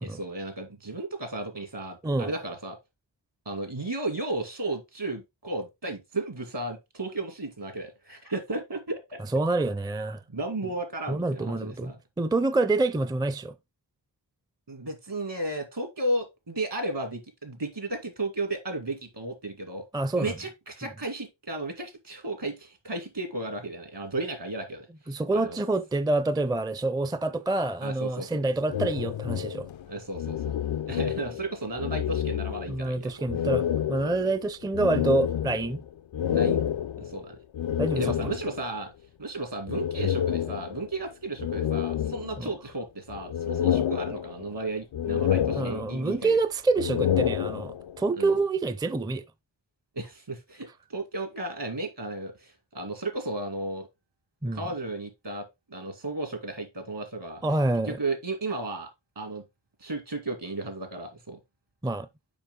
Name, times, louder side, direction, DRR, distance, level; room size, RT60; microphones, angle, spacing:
voice 1, 0.0-2.8 3.5-9.2 10.3-12.0 14.7-19.8 20.2-24.9 25.3-25.6 27.8-28.4 29.9-30.6 30.9-33.2 34.2-34.3 36.3-36.6 37.0-37.4 37.9-38.9 39.2-46.4 48.2-48.3 50.0-53.9 54.5-57.4 57.9-58.9 59.2-59.4 59.8-61.4, right 2 dB, 65° right, 2.5 m, -34 dB
voice 2, 9.3-10.2 11.1-11.9 12.2-13.5 19.9-20.3 25.1-29.7 32.7-35.8 37.8-38.1 42.4-42.5 45.6-49.2 54.4-54.6 57.4-58.0 61.8-62.1, right 2 dB, 10° right, 0.4 m, -27 dB
sound 1, 28.7-31.5 31.8-32.9 33.3-38.7 39.7-41.0 41.4-42.7 43.1-44.6 44.9-46.2 46.7-48.0, left 10 dB, 85° left, 0.5 m, -29 dB
7.1 x 5.3 x 3.7 m
wide cardioid pair, 55°, 45 cm